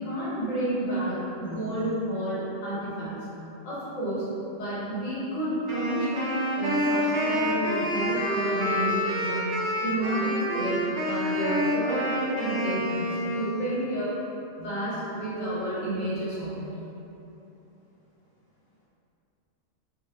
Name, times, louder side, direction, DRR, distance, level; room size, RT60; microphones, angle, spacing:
voice 1, 0.0-3.3 3.6-4.3 4.6-9.4 9.8-14.1 14.6-16.7, right 1 dB, 80° left, -9 dB, 1.3 m, -31 dB
Wind instrument woodwind instrument, 5.7-13.8, equal, 70° right, 0.4 m, -28 dB
2.7 x 2.6 x 2.7 m, 2.9 s
omnidirectional pair, 1.4 m